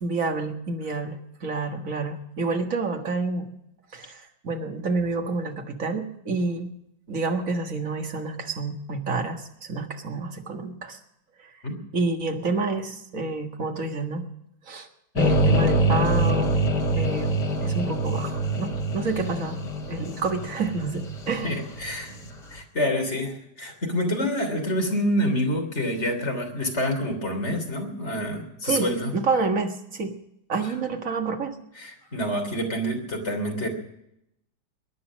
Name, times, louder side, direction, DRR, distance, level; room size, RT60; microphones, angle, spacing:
voice 1, 0.0-3.5 3.9-6.7 7.1-11.0 11.9-14.3 14.7-14.9 15.2-16.5 16.9-19.6 19.9-21.5 28.6-28.9 29.1-30.1 30.5-31.6, right 3 dB, 45° right, 4 dB, 2.0 m, -28 dB
sound 1, 15.2-22.3, right 1 dB, 65° left, 2.5 m, -25 dB
voice 2, 21.4-29.1 31.8-33.7, equal, 35° left, 3 dB, 3.5 m, -27 dB
22.5 x 10.0 x 6.2 m, 0.78 s
omnidirectional pair, 2.0 m